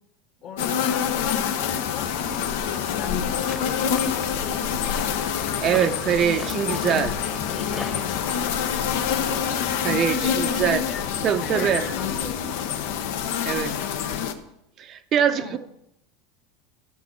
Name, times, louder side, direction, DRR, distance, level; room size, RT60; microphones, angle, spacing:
voice 1, 0.4-5.6 6.0-6.9 7.2-8.0 9.8-12.6 15.2-15.6, left 4 dB, 50° left, 4 dB, 1.8 m, -37 dB
sound 1, 0.6-14.3, left 8 dB, 75° left, 0.8 m, -26 dB
sound 2, 1.6-13.1, left 4 dB, 30° left, 1.1 m, -42 dB
sound 3, 3.0-8.9, left 1 dB, 5° left, 1.0 m, -40 dB
voice 2, 5.6-7.1 9.8-10.8 11.2-11.9 13.4-13.8 14.8-15.6, right 8 dB, 40° right, 9 dB, 0.5 m, -23 dB
13.0 x 6.3 x 4.6 m, 0.82 s
supercardioid pair, 125°, 0 cm